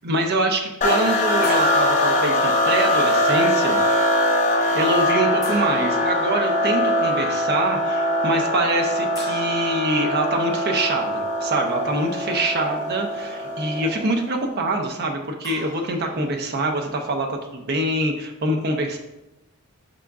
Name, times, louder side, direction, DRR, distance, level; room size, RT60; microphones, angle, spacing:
voice 1, 0.0-3.8 4.7-19.0, right 2 dB, 45° right, 3 dB, 0.6 m, -24 dB
sound 1, 0.8-14.2, left 1 dB, 35° left, 0.6 m, -22 dB
sound 2, 1.4-2.7 5.4-6.1 9.1-10.7 15.4-16.6, left 1 dB, 15° left, 1.1 m, -40 dB
5.0 x 2.3 x 3.6 m, 0.95 s
head